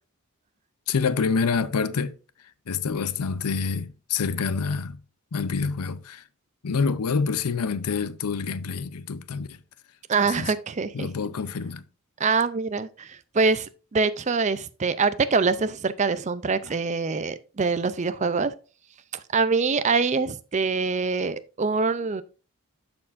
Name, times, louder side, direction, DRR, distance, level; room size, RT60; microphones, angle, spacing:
voice 1, 0.9-2.1 2.7-5.0 5.3-6.2 6.6-9.6 10.2-10.5 10.9-11.8, left 5 dB, 90° left, 0.6 m, -27 dB
voice 2, 10.1-11.1 12.2-18.5 19.3-22.2, right 4 dB, 30° right, 0.4 m, -24 dB
13.0 x 4.4 x 2.5 m
head